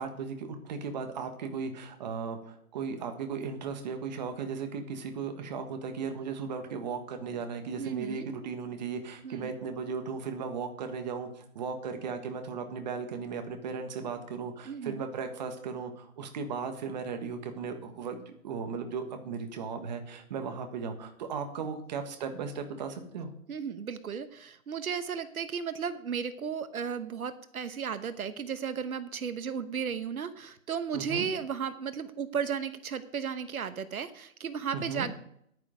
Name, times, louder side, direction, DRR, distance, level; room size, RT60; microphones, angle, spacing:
voice 1, 0.0-23.3 30.9-31.3 34.7-35.1, right 5 dB, 30° right, 6 dB, 1.4 m, -36 dB
voice 2, 7.8-8.3 9.2-9.5 14.6-15.0 23.5-35.2, right 7 dB, 75° right, 11 dB, 1.1 m, -34 dB
10.5 x 9.6 x 5.2 m, 0.70 s
hypercardioid pair, 160°, 43 cm